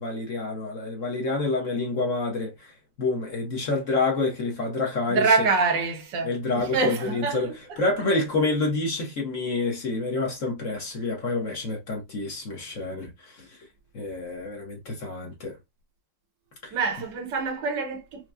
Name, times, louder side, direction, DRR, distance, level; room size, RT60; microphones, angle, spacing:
voice 1, 0.0-2.7 3.0-5.5 6.2-7.5 7.8-13.6 13.9-15.5 16.6-16.8, left 3 dB, 50° left, 1.1 m, -28 dB
voice 2, 5.1-7.8 16.7-18.3, right 4 dB, 75° right, 1.5 m, -26 dB
4.6 x 2.1 x 2.5 m
omnidirectional pair, 2.0 m